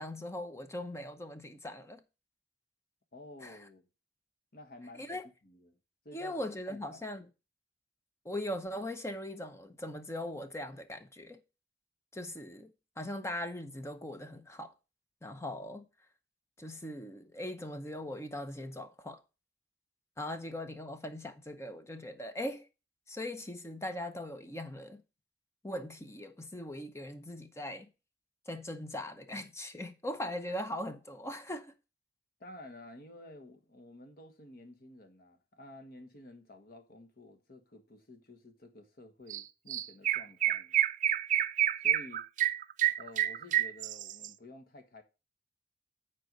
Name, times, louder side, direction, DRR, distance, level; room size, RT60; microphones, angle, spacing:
voice 1, 0.0-2.0 3.4-3.6 5.0-5.3 6.1-7.2 8.2-11.4 12.1-14.7 15.2-15.9 16.6-19.2 20.2-22.7 23.1-25.0 25.6-27.9 28.5-31.7, left 1 dB, 15° left, 0.8 m, -40 dB
voice 2, 3.1-3.9 4.5-5.8 6.0-6.3 6.7-7.1 32.4-40.8 41.8-42.2 43.0-45.0, left 1 dB, 55° left, 1.4 m, -52 dB
Chirp tweet, 39.3-39.4 39.7-44.3, right 12 dB, 45° right, 0.4 m, -29 dB
9.1 x 4.5 x 5.3 m
head